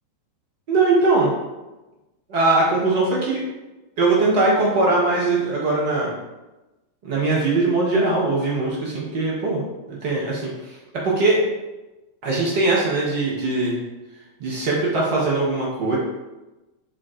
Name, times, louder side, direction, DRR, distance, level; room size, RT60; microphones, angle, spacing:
voice 1, 0.7-1.3 2.3-3.4 4.0-6.2 7.0-9.6 9.9-10.8 11.0-11.4 12.2-13.8 14.4-16.0, right 3 dB, 50° right, -4 dB, 1.0 m, -20 dB
4.3 x 2.3 x 4.2 m, 1.1 s
figure-of-eight pair, 90°, 0 cm